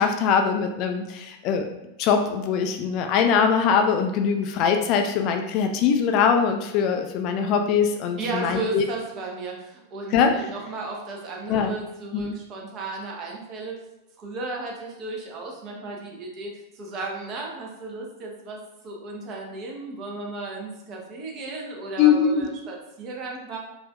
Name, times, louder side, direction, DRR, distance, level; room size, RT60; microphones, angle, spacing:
voice 1, 0.0-1.7 2.0-8.9 10.1-10.3 11.5-11.8 12.1-12.3 22.0-22.5, left 6 dB, 40° left, 5 dB, 0.3 m, -22 dB
voice 2, 8.2-13.8 14.2-18.6 18.8-23.6, right 3 dB, 35° right, -1 dB, 0.9 m, -34 dB
4.7 x 2.5 x 2.3 m, 0.95 s
figure-of-eight pair, 90°, 0 cm